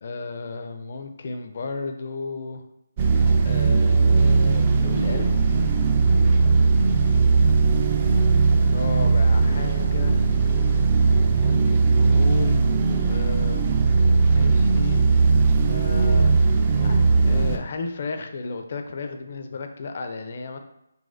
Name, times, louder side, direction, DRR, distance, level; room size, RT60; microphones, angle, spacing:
voice 1, 0.0-2.6 3.4-5.6 8.7-10.3 11.4-12.7 13.0-15.3 15.7-16.4 16.8-20.6, left 4 dB, 50° left, 6 dB, 0.4 m, -33 dB
sound 1, 3.0-17.6, right 4 dB, 30° right, 0.3 m, -19 dB
4.0 x 2.3 x 2.5 m, 0.83 s
figure-of-eight pair, 150°, 0 cm